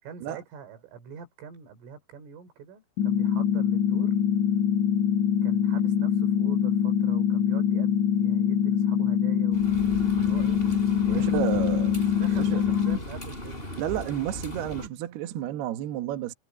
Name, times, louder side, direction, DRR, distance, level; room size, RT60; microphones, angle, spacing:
voice 1, 0.0-4.2 5.4-9.8 10.2-10.6 11.2-13.7, right 7 dB, 90° right, 7.1 m, -45 dB
sound 1, 3.0-13.0, left 8 dB, 75° left, 5.1 m, -24 dB
sound 2, 9.5-14.9, left 1 dB, 10° left, 5.8 m, -38 dB
voice 2, 11.0-11.9 12.3-12.6 13.8-16.3, right 13 dB, 65° right, 3.0 m, -31 dB
omnidirectional pair, 5.6 m